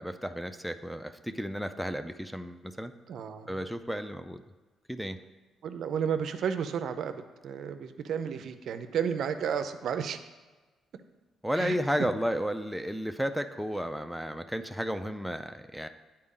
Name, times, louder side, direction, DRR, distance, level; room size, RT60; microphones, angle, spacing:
voice 1, 0.0-2.9 3.5-4.4 4.9-5.2 11.4-15.9, equal, ahead, 6 dB, 0.4 m, -33 dB
voice 2, 3.1-3.5 5.6-7.1 7.4-10.2 11.6-11.7, right 7 dB, 70° right, 9 dB, 0.5 m, -32 dB
9.7 x 4.3 x 3.7 m, 1.3 s
cardioid pair, 90°, 0 cm